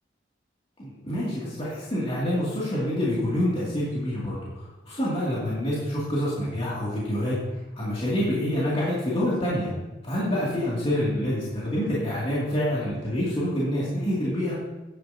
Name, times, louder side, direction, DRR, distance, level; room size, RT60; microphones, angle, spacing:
voice 1, 0.8-7.4 7.7-9.7 10.0-14.6, left 1 dB, 30° left, -8 dB, 2.5 m, -27 dB
11.0 x 10.0 x 2.8 m, 1.1 s
head